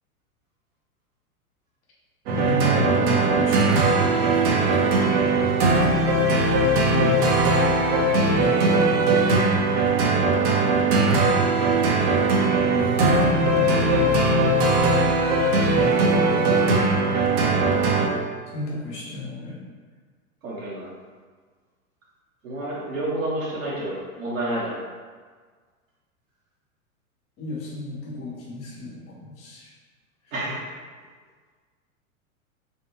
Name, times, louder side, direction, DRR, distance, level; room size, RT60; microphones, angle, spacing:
voice 1, 2.3-5.5 12.7-14.7 18.5-19.6 27.4-29.7, left 1 dB, 15° left, -4 dB, 0.4 m, -32 dB
sound 1, 2.3-18.1, right 2 dB, 45° right, 0.6 m, -20 dB
voice 2, 6.9-7.2 16.3-17.2 20.4-20.9 22.4-24.7 30.3-30.6, right 1 dB, 65° right, -6 dB, 1.1 m, -30 dB
3.4 x 2.2 x 3.0 m, 1.5 s
figure-of-eight pair, 95°, 43 cm